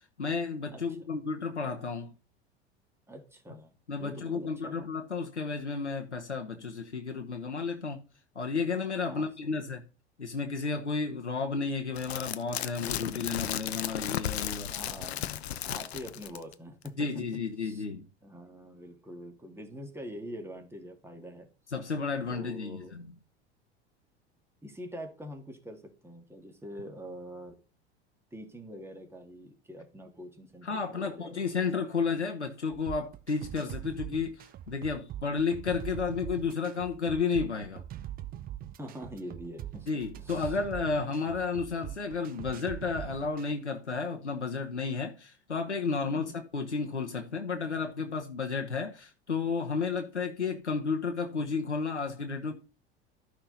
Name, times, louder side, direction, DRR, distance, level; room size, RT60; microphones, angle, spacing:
voice 1, 0.2-2.1 3.9-8.0 8.3-9.8 10.2-14.7 17.0-18.0 21.7-23.1 30.6-37.8 39.9-52.5, left 4 dB, 85° left, 1.0 m, -32 dB
voice 2, 3.1-4.8 9.0-9.6 14.7-17.1 17.6-17.8 18.2-21.5 22.3-22.9 24.6-27.6 28.3-31.5 38.8-39.9 40.1-40.6 46.1-46.4, equal, 5° right, 2.3 m, -45 dB
sound 1, 12.0-16.5 16.9-17.0, left 11 dB, 70° left, 0.7 m, -35 dB
sound 2, 32.7-43.5, right 12 dB, 25° right, 0.6 m, -42 dB
13.0 x 5.9 x 4.0 m
figure-of-eight pair, 75°, 33 cm